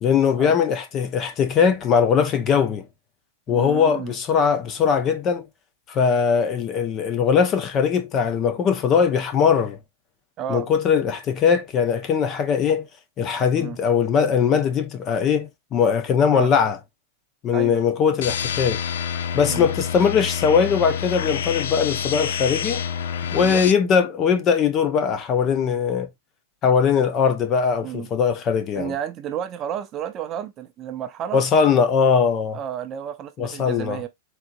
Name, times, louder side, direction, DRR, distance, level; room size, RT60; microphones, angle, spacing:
voice 1, 0.0-2.9 3.5-5.5 5.9-9.8 10.5-12.9 13.2-16.8 17.4-18.8 19.3-22.8 23.3-26.1 26.6-28.9 31.3-32.6 33.4-34.0, left 6 dB, 20° left, 0.6 m, -20 dB
voice 2, 3.5-4.1 10.4-10.7 13.5-13.8 16.3-16.5 17.5-17.8 19.5-19.7 23.4-23.6 27.8-28.1 28.8-31.4 32.5-34.1, right 9 dB, 25° right, 0.5 m, -31 dB
sound 1, 18.2-23.7, left 7 dB, 75° left, 0.6 m, -28 dB
4.3 x 3.8 x 2.6 m
supercardioid pair, 170°, 0 cm